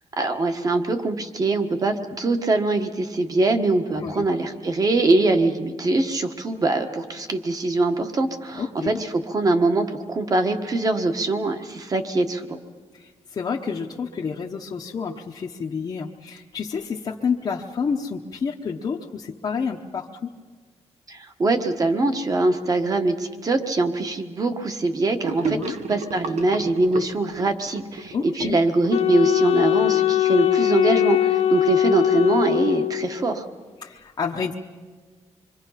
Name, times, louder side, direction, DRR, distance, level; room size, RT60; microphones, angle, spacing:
voice 1, 0.2-12.6 21.1-33.4, right 2 dB, 30° right, 7 dB, 1.4 m, -23 dB
voice 2, 3.9-4.3 8.5-9.0 12.9-20.3 25.4-25.8 28.1-28.6 33.8-34.5, left 5 dB, 40° left, -2 dB, 0.9 m, -29 dB
Gurgling / Sink (filling or washing), 25.2-29.7, right 5 dB, 75° right, 1.1 m, -32 dB
Wind instrument woodwind instrument, 28.9-33.3, left 13 dB, 65° left, 0.7 m, -21 dB
26.5 x 24.0 x 5.8 m, 1.4 s
wide cardioid pair, 175°, 12 cm